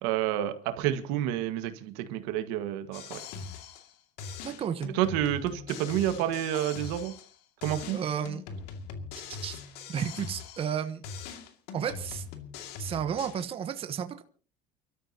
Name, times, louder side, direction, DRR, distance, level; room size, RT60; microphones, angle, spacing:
voice 1, 0.0-3.2 5.0-7.1 7.6-8.0, right 12 dB, 80° right, 9 dB, 1.8 m, -29 dB
sound 1, 2.9-3.9 4.2-7.3 7.6-10.8 11.0-13.4, left 5 dB, 75° left, 2.4 m, -41 dB
voice 2, 4.4-4.9 7.9-8.4 9.4-9.6 9.9-11.0 11.7-12.2 12.8-14.2, right 8 dB, 35° right, 9 dB, 1.1 m, -32 dB
30.0 x 13.0 x 2.9 m, 0.38 s
cardioid pair, 130°, 17 cm